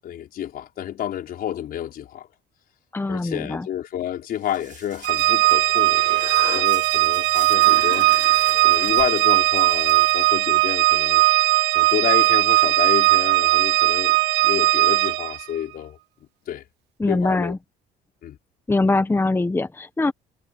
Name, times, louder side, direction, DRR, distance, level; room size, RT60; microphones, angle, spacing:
voice 1, 0.0-2.3 3.1-8.1 8.6-11.2 11.7-16.0 16.5-16.6 17.1-17.5 18.2-18.4, left 11 dB, 60° left, 4.8 m, -30 dB
voice 2, 2.9-3.7 17.0-17.6 18.7-20.1, left 2 dB, 15° left, 1.2 m, -22 dB
sound 1, 4.4-14.2, right 9 dB, 50° right, 6.9 m, -46 dB
Organ, 5.0-15.4, right 21 dB, 85° right, 0.6 m, -18 dB
Human voice, 5.5-10.7, left 15 dB, 80° left, 4.7 m, -39 dB
cardioid pair, 110°, 17 cm